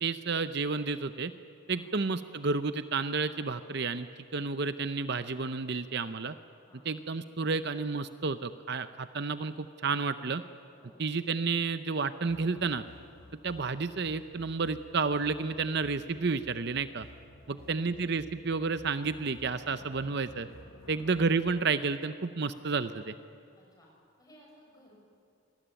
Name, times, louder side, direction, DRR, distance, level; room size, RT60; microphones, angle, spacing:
voice 1, 0.0-1.3 1.7-4.1 4.3-6.3 6.8-10.4 11.0-12.8 13.4-17.1 17.5-20.5 20.9-23.1, right 4 dB, 50° right, 11 dB, 0.7 m, -31 dB
voice 2, 10.8-11.1 13.2-13.4 17.4-18.1 20.8-21.0 23.6-23.9 24.2-25.0, equal, 15° left, -2 dB, 7.2 m, -59 dB
sound 1, 12.3-21.6, left 1 dB, 75° left, 1.2 m, -54 dB
26.5 x 19.5 x 9.1 m, 2.6 s
head